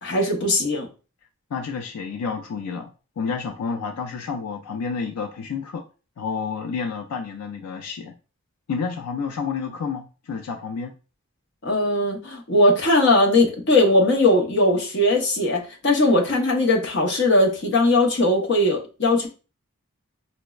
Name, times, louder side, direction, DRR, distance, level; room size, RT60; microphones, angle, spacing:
voice 1, 0.0-0.9 11.6-19.3, left 1 dB, 50° left, 0 dB, 0.8 m, -19 dB
voice 2, 1.5-2.9 3.2-5.8 6.2-8.1 8.7-10.9, left 5 dB, 90° left, 5 dB, 0.4 m, -30 dB
5.0 x 2.0 x 2.3 m, 0.34 s
head